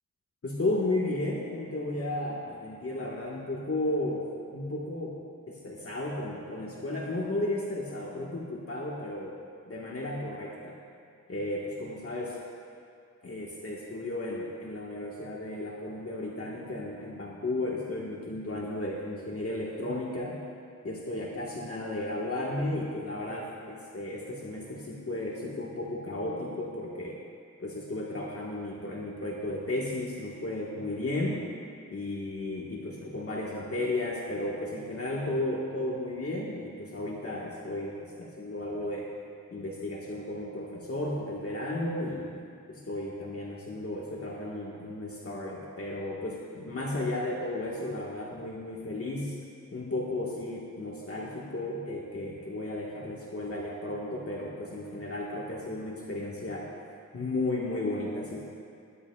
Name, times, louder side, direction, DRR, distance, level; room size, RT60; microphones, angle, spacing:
voice 1, 0.4-4.3 4.5-5.2 5.5-9.4 9.7-10.8 11.3-12.4 13.2-20.4 20.8-27.2 27.6-31.4 31.9-39.1 39.5-42.3 42.7-49.4 49.7-56.7 57.1-58.4, left 2 dB, 45° left, -4 dB, 1.6 m, -34 dB
20.0 x 11.0 x 2.4 m, 2.4 s
wide cardioid pair, 85°, 31 cm